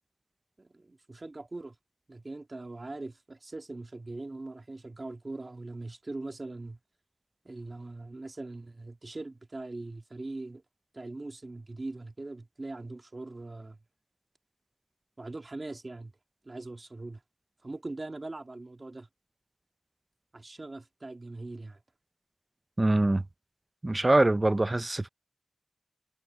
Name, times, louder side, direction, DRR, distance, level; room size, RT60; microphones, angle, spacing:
voice 1, 0.6-1.7 2.1-6.8 7.4-10.6 10.9-13.8 15.2-16.1 16.4-17.2 17.6-19.1 20.3-21.8, right 2 dB, 55° right, 2.2 m, -41 dB
voice 2, 22.8-23.2 23.8-25.1, right 2 dB, 35° right, 0.4 m, -24 dB
wide cardioid pair, 60°, 0 cm